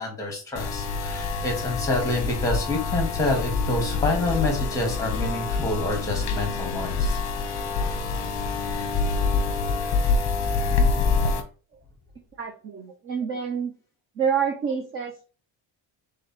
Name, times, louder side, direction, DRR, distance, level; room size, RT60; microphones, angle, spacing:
voice 1, 0.0-7.2, left 2 dB, 5° left, 2 dB, 1.3 m, -27 dB
sound 1, 0.6-11.4, left 4 dB, 35° left, 0.8 m, -26 dB
voice 2, 12.4-13.7 14.2-15.2, right 7 dB, 30° right, 4 dB, 0.4 m, -27 dB
3.7 x 3.3 x 4.2 m, 0.37 s
cardioid pair, 175°, 47 cm